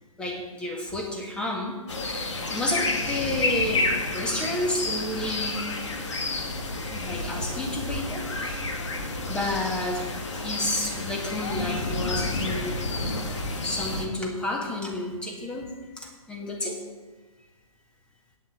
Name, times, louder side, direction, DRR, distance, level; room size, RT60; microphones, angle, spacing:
voice 1, 0.2-1.7 2.5-5.7 6.9-8.7 9.3-12.8 13.6-15.7 16.0-16.8, left 1 dB, 5° left, 0 dB, 1.7 m, -31 dB
sound 1, 1.9-14.1, left 2 dB, 55° left, 1.9 m, -30 dB
9.1 x 7.9 x 8.1 m, 1.3 s
figure-of-eight pair, 130°, 18 cm